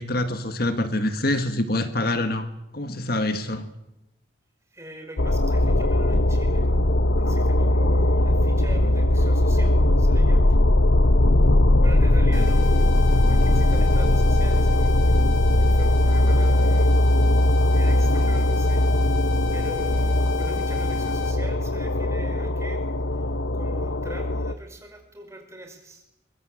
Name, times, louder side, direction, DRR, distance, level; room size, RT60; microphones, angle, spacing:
voice 1, 0.0-2.5 2.7-3.7, left 1 dB, 50° left, 9 dB, 1.7 m, -25 dB
voice 2, 4.7-6.7 7.2-10.6 11.0-15.2 15.7-17.0 17.7-19.2 19.5-22.8 23.1-23.3 23.5-26.1, right 1 dB, 15° right, 4 dB, 5.1 m, -42 dB
sound 1, 5.2-24.5, left 1 dB, 70° left, 1.0 m, -20 dB
sound 2, 12.3-21.3, left 7 dB, 85° left, 3.2 m, -32 dB
23.5 x 23.0 x 9.0 m, 0.89 s
head